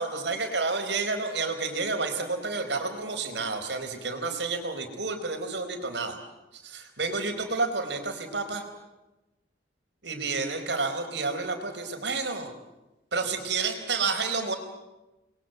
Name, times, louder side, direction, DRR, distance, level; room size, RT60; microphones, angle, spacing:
voice 1, 0.0-6.2 6.5-8.6 10.0-12.5 13.1-14.6, right 4 dB, 80° right, 6 dB, 4.5 m, -30 dB
29.5 x 22.0 x 8.1 m, 1.0 s
head